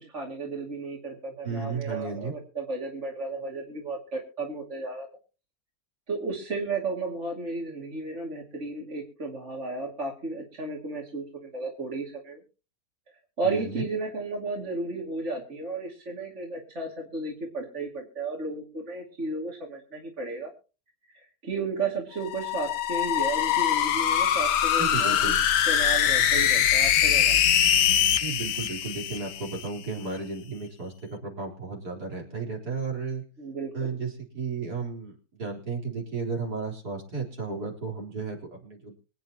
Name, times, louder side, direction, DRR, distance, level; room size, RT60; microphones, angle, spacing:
voice 1, 0.1-5.1 6.1-12.4 13.4-20.5 21.1-25.3 25.7-27.4 33.4-33.7, right 3 dB, 45° right, -1 dB, 2.8 m, -33 dB
voice 2, 1.4-2.3 13.4-13.8 24.8-25.4 28.2-33.2 33.7-38.9, right 4 dB, 70° right, -1 dB, 4.6 m, -34 dB
sound 1, 22.2-29.7, left 9 dB, 85° left, 1.5 m, -23 dB
26.0 x 9.3 x 2.9 m, 0.35 s
omnidirectional pair, 1.8 m